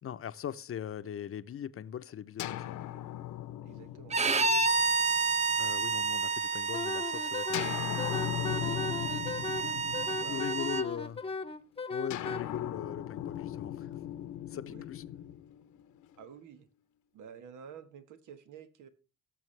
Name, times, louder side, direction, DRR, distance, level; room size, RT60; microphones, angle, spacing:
voice 1, 0.0-2.9 5.6-8.0 10.3-11.2 11.9-13.9 14.5-15.0, left 9 dB, 45° left, 0.7 m, -40 dB
sound 1, 2.4-6.2 7.5-11.1 12.1-16.2, left 12 dB, 80° left, 0.9 m, -39 dB
voice 2, 3.6-4.2 10.1-10.4 10.8-10.9 14.7-14.8 16.2-16.7 17.1-18.9, right 7 dB, 80° right, 1.5 m, -50 dB
Bowed string instrument, 4.1-10.8, right 4 dB, 25° right, 0.6 m, -30 dB
Wind instrument woodwind instrument, 6.7-12.4, left 4 dB, 20° left, 0.9 m, -37 dB
17.5 x 7.0 x 3.3 m
cardioid pair, 90°, 30 cm